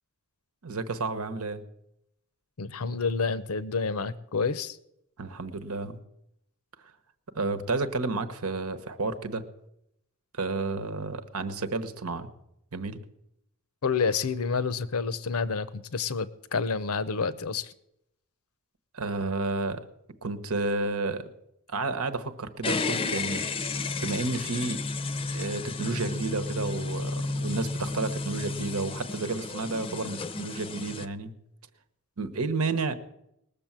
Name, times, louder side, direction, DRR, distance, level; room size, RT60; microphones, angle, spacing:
voice 1, 0.6-1.6 5.2-6.0 7.3-9.4 10.4-12.3 12.7-13.0 18.9-19.8 20.2-21.3 21.7-23.5 24.0-24.8 25.3-31.3 32.2-32.9, right 3 dB, 90° right, 10 dB, 1.2 m, -31 dB
voice 2, 2.6-4.8 13.8-17.7, left 5 dB, 85° left, 16 dB, 0.7 m, -29 dB
sound 1, 22.6-31.0, left 3 dB, 25° left, 0.5 m, -32 dB
20.0 x 7.0 x 7.4 m, 0.80 s
head